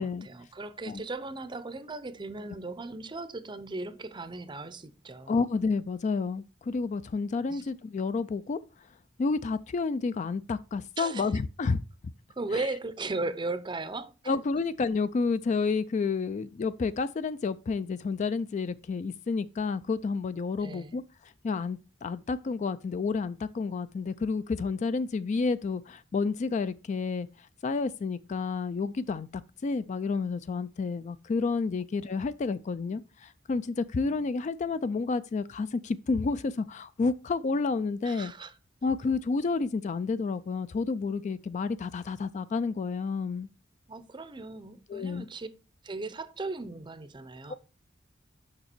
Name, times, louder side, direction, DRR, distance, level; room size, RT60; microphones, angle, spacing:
voice 1, 0.0-5.4 7.5-7.6 11.0-11.3 12.3-14.4 20.6-21.0 38.0-38.5 43.9-45.5 45.8-47.5, right 3 dB, 25° right, 0.6 m, -37 dB
voice 2, 5.3-8.6 9.2-11.8 12.5-12.6 14.3-21.0 21.4-27.3 27.6-38.3 38.8-43.5 44.9-45.3 47.5-47.6, left 4 dB, 40° left, 0.3 m, -30 dB
6.7 x 5.6 x 4.4 m
head